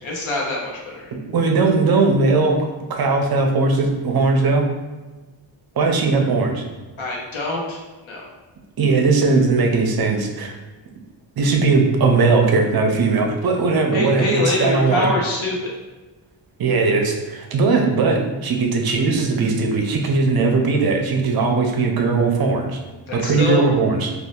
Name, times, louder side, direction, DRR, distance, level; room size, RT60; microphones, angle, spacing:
voice 1, 0.0-1.1 7.0-8.3 13.9-15.7 23.1-23.7, left 2 dB, 85° left, -2 dB, 1.0 m, -24 dB
voice 2, 1.1-4.7 5.8-6.6 8.8-10.5 11.4-15.1 16.6-22.8 23.1-24.1, right 3 dB, 50° right, 2 dB, 0.5 m, -19 dB
2.6 x 2.4 x 3.5 m, 1.2 s
wide cardioid pair, 160°, 46 cm